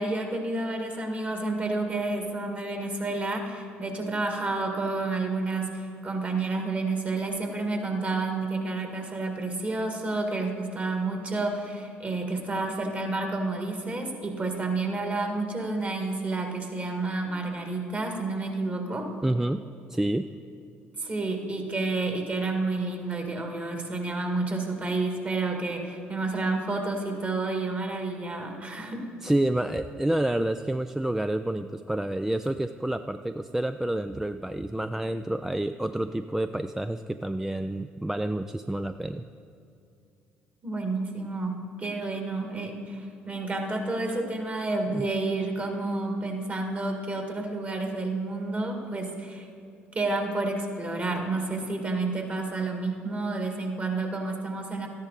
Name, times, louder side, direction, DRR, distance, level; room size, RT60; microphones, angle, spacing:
voice 1, 0.0-19.1 21.0-29.1 40.6-49.5 49.9-54.9, right 3 dB, 35° right, 3 dB, 2.0 m, -30 dB
voice 2, 19.2-19.6 19.9-20.3 29.2-39.3 44.9-45.1, right 1 dB, 10° right, 10 dB, 0.3 m, -28 dB
13.0 x 10.5 x 4.1 m, 2.5 s
hypercardioid pair, 65°, 5 cm